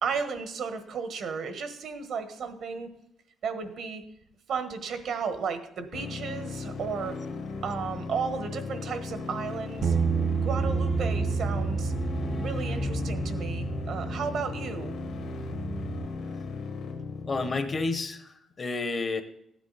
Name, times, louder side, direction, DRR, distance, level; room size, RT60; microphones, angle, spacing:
voice 1, 0.0-2.9 3.4-4.0 4.5-7.2 7.6-9.9 10.4-11.9 12.4-14.9, right 6 dB, 60° right, 8 dB, 1.3 m, -34 dB
sound 1, 5.9-17.9, left 4 dB, 65° left, 1.7 m, -37 dB
sound 2, 9.8-15.1, left 2 dB, ahead, 0.6 m, -36 dB
Bass guitar, 9.8-16.1, right 7 dB, 40° right, 0.4 m, -31 dB
voice 2, 17.3-19.2, left 3 dB, 30° left, 9 dB, 0.9 m, -30 dB
15.0 x 9.8 x 4.1 m, 0.78 s
cardioid pair, 145°, 0 cm